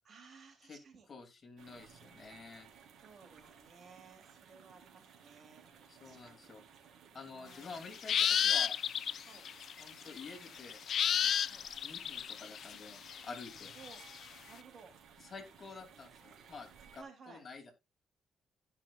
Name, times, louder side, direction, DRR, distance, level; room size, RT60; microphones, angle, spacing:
voice 1, 0.0-1.1 3.0-6.5 7.3-7.8 9.2-9.5 11.5-11.6 13.7-14.0 14.5-14.9 17.0-17.4, right 5 dB, 50° right, 4 dB, 3.2 m, -57 dB
voice 2, 1.1-2.7 5.9-6.6 7.1-8.8 9.8-10.8 11.8-13.7 15.2-17.7, left 4 dB, 40° left, 3 dB, 2.9 m, -49 dB
sound 1, 1.6-17.0, right 7 dB, 75° right, 2.8 m, -59 dB
sound 2, 7.8-14.2, left 9 dB, 60° left, 0.3 m, -33 dB
15.5 x 5.6 x 2.5 m, 0.25 s
cardioid pair, 90°, 0 cm